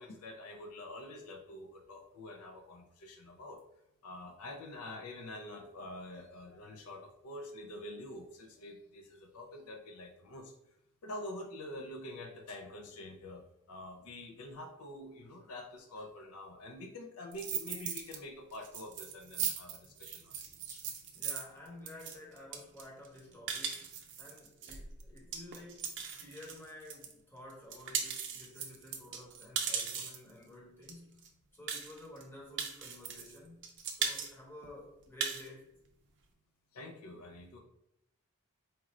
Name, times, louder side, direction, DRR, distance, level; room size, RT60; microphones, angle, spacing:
voice 1, 0.0-3.6 4.0-10.6 11.0-20.8 36.7-37.6, left 1 dB, 85° left, 4 dB, 0.5 m, -46 dB
sound 1, 17.3-18.2 18.5-27.1 27.5-30.3 30.9-31.0 31.2-31.3 31.7-32.2 32.6-33.4 33.6-34.3 34.6-34.7 35.0-35.5, right 7 dB, 55° right, 0.5 m, -38 dB
voice 2, 21.1-25.9 26.2-31.2 31.5-35.7, left 1 dB, 10° left, -3 dB, 1.0 m, -52 dB
4.4 x 2.5 x 3.0 m, 0.81 s
head